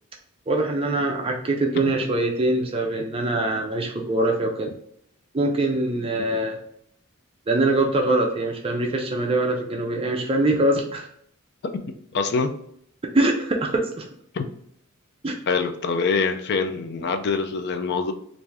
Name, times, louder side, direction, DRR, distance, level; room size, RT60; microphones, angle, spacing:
voice 1, 0.5-4.7 5.3-6.6 7.5-11.1 13.1-14.0 15.2-15.3, right 2 dB, 25° right, 1 dB, 0.4 m, -23 dB
voice 2, 12.1-12.5 14.3-14.5 15.5-18.1, left 4 dB, 50° left, 7 dB, 0.4 m, -24 dB
3.4 x 2.6 x 3.3 m, 0.68 s
head